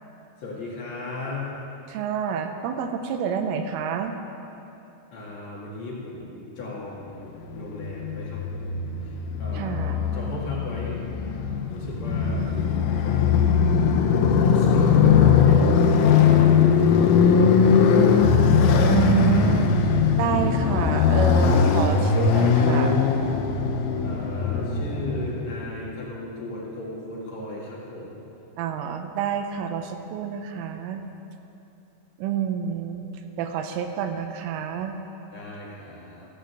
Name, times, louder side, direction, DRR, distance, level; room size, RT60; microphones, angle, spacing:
voice 1, 0.4-1.5 5.1-9.1 9.4-11.0 11.7-13.5 14.4-18.0 24.0-28.2 35.3-36.3, left 2 dB, 50° left, -5 dB, 2.4 m, -36 dB
voice 2, 1.9-4.1 9.5-10.1 18.8-19.8 20.2-23.0 28.6-31.0 32.2-33.1 33.4-35.0, right 8 dB, 85° right, 6 dB, 3.2 m, -28 dB
Motorcycle, 7.4-25.6, left 6 dB, 90° left, 3.4 m, -20 dB
15.5 x 6.7 x 7.8 m, 2.8 s
omnidirectional pair, 5.7 m